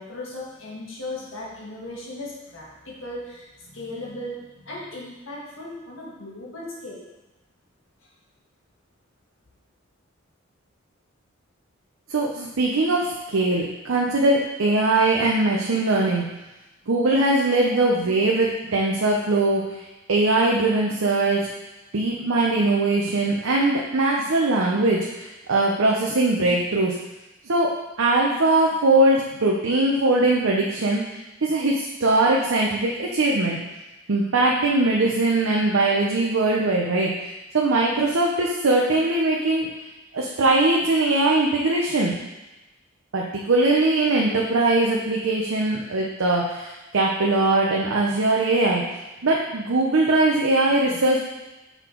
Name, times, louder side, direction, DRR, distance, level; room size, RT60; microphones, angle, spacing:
voice 1, 0.0-7.0 8.0-8.1, left 1 dB, 70° left, -4 dB, 1.8 m, -37 dB
voice 2, 12.1-16.2 16.9-21.5 21.9-27.0 27.5-33.6 34.1-39.7 40.1-42.2 43.1-48.8 49.2-51.2, right 2 dB, 85° right, -2 dB, 0.7 m, -21 dB
6.8 x 4.0 x 4.5 m, 1.0 s
head